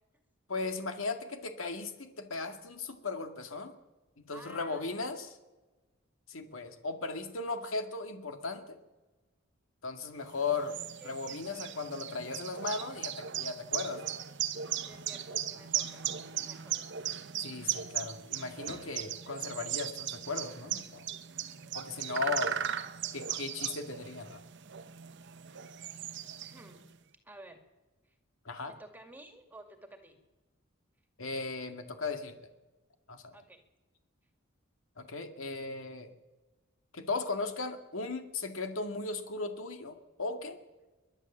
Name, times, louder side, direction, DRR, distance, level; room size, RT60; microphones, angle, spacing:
voice 1, 0.5-3.7 4.2-5.4 6.3-8.8 9.8-14.2 17.4-21.1 21.7-22.5 23.1-24.4 28.5-28.7 31.2-32.5 33.1-33.4 35.0-36.1 36.9-40.6, left 3 dB, 75° left, 7 dB, 2.1 m, -37 dB
voice 2, 4.3-5.0 11.0-11.7 14.9-16.8 22.1-22.3 26.1-26.9 27.2-27.6 28.0-28.2 28.7-30.2 33.3-33.6, right 1 dB, 10° right, 6 dB, 2.2 m, -53 dB
sound 1, 10.3-26.9, right 10 dB, 60° right, 0.9 m, -37 dB
sound 2, 14.8-16.2 17.6-17.9 18.3-19.5, left 1 dB, 30° left, 1.4 m, -57 dB
30.0 x 12.0 x 7.4 m, 1.2 s
head